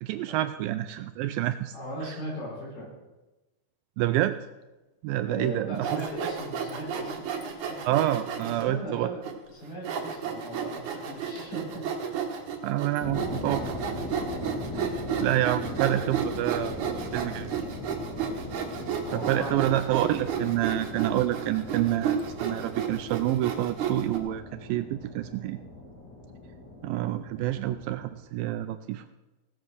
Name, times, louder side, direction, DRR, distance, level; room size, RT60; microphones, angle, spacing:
voice 1, 0.0-1.7 4.0-4.4 5.0-6.0 7.9-9.1 12.6-13.8 14.8-14.9 15.2-17.5 19.1-25.6 26.8-29.0, right 14 dB, 85° right, 10 dB, 2.1 m, -28 dB
voice 2, 1.7-2.9 5.2-7.3 7.7-7.9 8.5-9.2 9.5-11.9 19.0-19.7, equal, 70° left, -4 dB, 6.9 m, -38 dB
Sawing, 5.8-8.6 9.2-9.3 9.8-24.2, right 7 dB, 60° right, 2.6 m, -32 dB
sound 1, 13.0-28.2, left 2 dB, 30° left, 2.9 m, -40 dB
16.5 x 7.3 x 6.3 m, 1.1 s
omnidirectional pair, 4.5 m